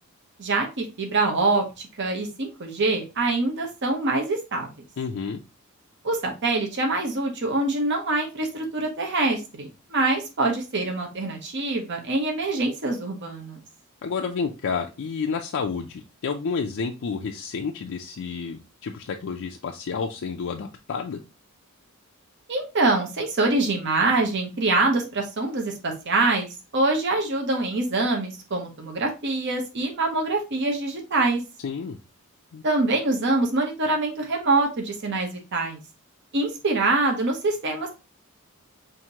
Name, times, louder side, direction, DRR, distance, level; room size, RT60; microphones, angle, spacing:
voice 1, 0.4-4.7 6.0-13.6 22.5-31.4 32.6-35.8 36.3-37.9, right 2 dB, 55° right, 2 dB, 0.9 m, -25 dB
voice 2, 5.0-5.4 14.0-21.2 31.6-32.0 32.5-32.6, left 5 dB, 60° left, 2 dB, 0.4 m, -30 dB
5.7 x 2.7 x 2.8 m, 0.28 s
head